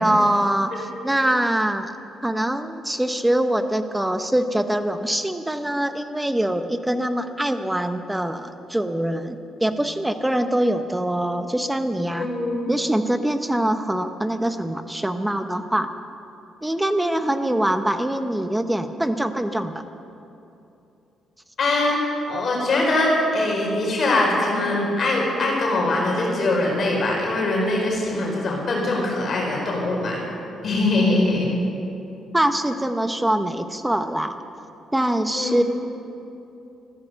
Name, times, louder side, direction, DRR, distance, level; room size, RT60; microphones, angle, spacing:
voice 1, 0.0-1.9 2.2-12.3 12.7-15.9 16.6-19.8 32.3-34.4 34.9-35.6, right 1 dB, 10° right, 9 dB, 1.0 m, -23 dB
voice 2, 12.1-12.6 21.6-22.0 22.3-30.2 30.6-31.5 35.3-35.6, left 2 dB, 50° left, -2 dB, 4.8 m, -22 dB
14.5 x 13.5 x 6.9 m, 2.8 s
cardioid pair, 90°, 0 cm